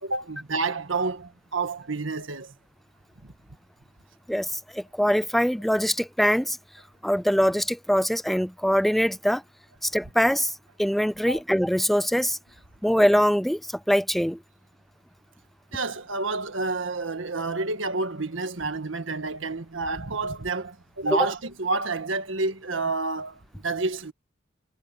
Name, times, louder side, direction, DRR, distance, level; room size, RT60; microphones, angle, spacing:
voice 1, 0.0-2.5 3.2-3.3 11.3-11.4 15.7-24.1, right 3 dB, 75° right, 1.7 m, -29 dB
voice 2, 4.3-6.6 7.0-9.4 9.8-10.5 10.8-12.4 12.8-13.6 13.9-14.4 21.1-21.3, equal, ahead, 0.4 m, -23 dB
head